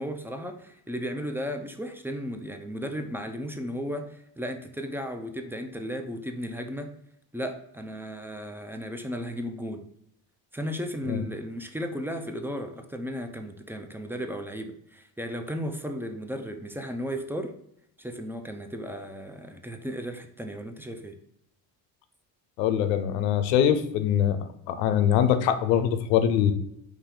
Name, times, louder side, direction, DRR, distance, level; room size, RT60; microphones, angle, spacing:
voice 1, 0.0-6.9 7.3-9.8 10.5-17.5 18.0-21.2, equal, 5° right, 5 dB, 0.5 m, -35 dB
voice 2, 22.6-26.5, left 9 dB, 90° left, 10 dB, 0.6 m, -23 dB
4.2 x 3.0 x 3.7 m, 0.76 s
supercardioid pair, 60°, 49 cm